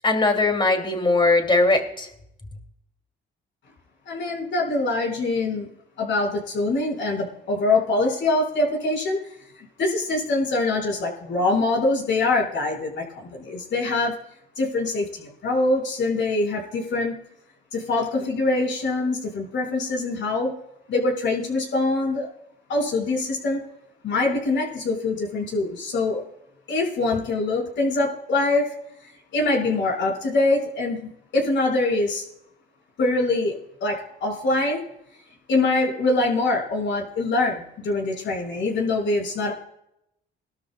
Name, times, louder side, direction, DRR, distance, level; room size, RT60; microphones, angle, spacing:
voice 1, 0.0-2.1, left 3 dB, 25° left, 4 dB, 2.6 m, -20 dB
voice 2, 4.1-5.7 6.0-9.2 9.6-14.2 14.6-17.2 17.7-20.5 20.9-22.3 22.7-23.6 24.0-26.2 26.7-28.7 29.3-31.0 31.3-32.3 33.0-33.5 33.8-34.8 35.5-39.5, left 2 dB, 70° left, 0 dB, 5.2 m, -24 dB
21.0 x 12.5 x 2.3 m, 0.79 s
cardioid pair, 90°, 20 cm